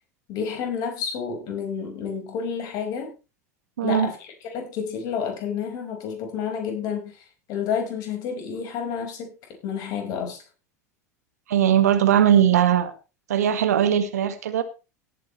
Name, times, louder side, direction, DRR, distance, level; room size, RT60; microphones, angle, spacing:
voice 1, 0.3-3.1 3.8-9.3 9.6-10.4, left 7 dB, 50° left, 3 dB, 5.1 m, -30 dB
voice 2, 3.8-4.1 11.5-12.9 13.3-14.6, right 10 dB, 70° right, 11 dB, 1.8 m, -19 dB
18.0 x 8.7 x 3.2 m, 0.31 s
figure-of-eight pair, 80°, 9 cm